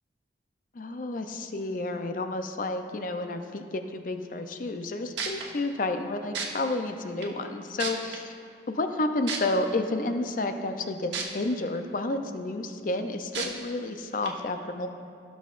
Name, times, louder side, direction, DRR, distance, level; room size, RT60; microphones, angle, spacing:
voice 1, 0.7-8.2 8.7-14.9, left 2 dB, 50° left, 7 dB, 0.5 m, -31 dB
sound 1, 4.8-4.9 5.2-5.4 6.3-6.5 7.2-7.3 7.8-8.2 9.3-9.4 11.1-11.2 11.7-11.8 13.3-13.5 14.2-14.3, right 6 dB, 90° right, 1.0 m, -31 dB
15.5 x 6.2 x 2.5 m, 2.3 s
head